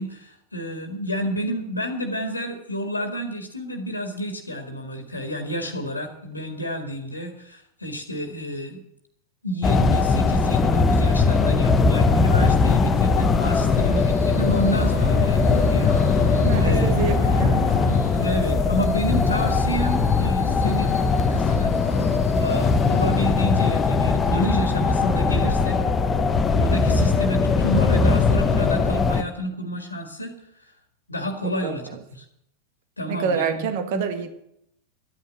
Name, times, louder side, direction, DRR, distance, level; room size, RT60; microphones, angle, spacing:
voice 1, 0.0-8.8 9.4-17.0 18.2-21.0 21.3-21.8 22.4-25.8 26.5-30.4 31.1-31.8 32.2-32.3 33.0-34.0, equal, 80° left, 1.9 m, -29 dB
sound 1, 9.6-29.2, left 4 dB, 20° left, 1.0 m, -20 dB
sound 2, 13.6-23.4, left 2 dB, 85° right, 7.7 m, -37 dB
voice 2, 16.4-17.7 18.1-18.3 31.4-32.0 33.1-34.3, right 6 dB, 50° right, 1.6 m, -28 dB
12.5 x 9.3 x 7.9 m
figure-of-eight pair, 90°, 0 cm